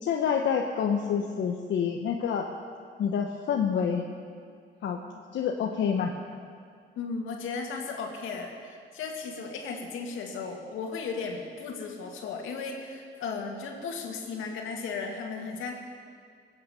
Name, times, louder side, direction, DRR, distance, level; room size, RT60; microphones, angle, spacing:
voice 1, 0.0-2.5 3.0-4.1 4.8-5.0 5.3-6.1, left 7 dB, 70° left, 2 dB, 1.1 m, -27 dB
voice 2, 7.0-15.7, left 4 dB, 85° left, 2 dB, 2.3 m, -35 dB
20.0 x 8.8 x 7.9 m, 2.2 s
cardioid pair, 90°, 20 cm